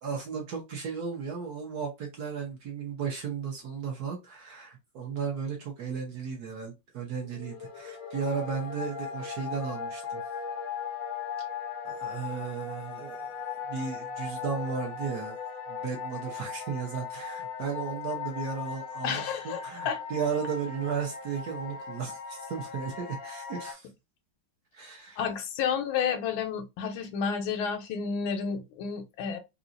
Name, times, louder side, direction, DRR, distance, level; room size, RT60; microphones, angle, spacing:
voice 1, 0.0-10.2 11.8-15.4 15.7-23.9 24.7-25.2, right 6 dB, 60° right, 1.2 m, -35 dB
sound 1, 7.2-23.7, left 6 dB, 65° left, 0.9 m, -38 dB
voice 2, 19.0-19.6 19.8-20.0 25.2-29.4, left 6 dB, 80° left, 1.5 m, -30 dB
3.9 x 2.3 x 2.5 m
omnidirectional pair, 2.2 m